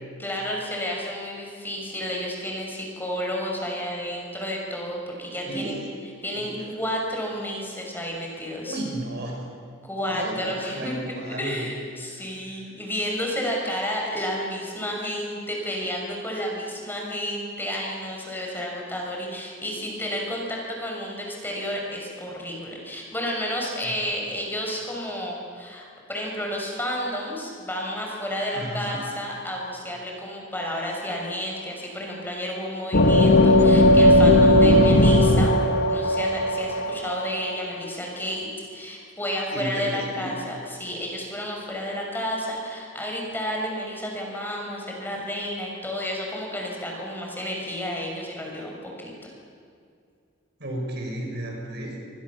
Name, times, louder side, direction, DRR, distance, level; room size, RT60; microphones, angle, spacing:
voice 1, 0.2-5.8 6.2-8.8 9.8-35.5 35.9-49.3, equal, 10° left, -1 dB, 5.9 m, -31 dB
voice 2, 5.5-5.8 6.3-6.6 8.7-9.5 10.1-11.7 28.5-29.0 39.5-40.3 50.6-52.0, right 1 dB, 55° right, 0 dB, 6.7 m, -33 dB
sound 1, 32.9-37.5, left 1 dB, 55° left, 1.6 m, -17 dB
29.0 x 24.5 x 7.2 m, 2.3 s
head